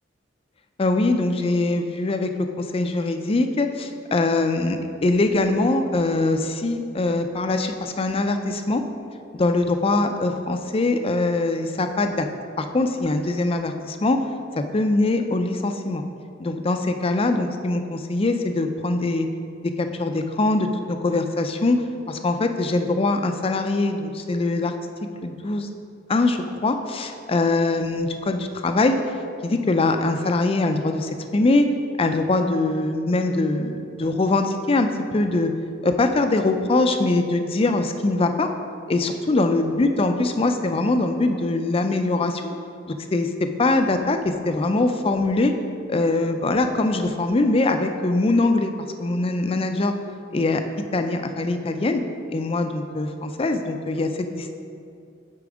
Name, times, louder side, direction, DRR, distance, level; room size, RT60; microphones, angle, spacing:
voice 1, 0.8-2.3 2.6-8.8 9.3-12.3 12.6-14.2 14.5-16.0 16.4-19.3 19.8-21.8 22.1-24.7 25.2-25.7 26.1-29.0 29.4-31.7 32.0-35.5 35.8-38.5 38.9-42.5 42.9-45.5 45.9-48.7 49.0-49.9 50.3-50.6 50.9-52.0 52.3-54.6, left 2 dB, 30° left, 7 dB, 0.4 m, -22 dB
8.4 x 4.3 x 4.9 m, 2.5 s
head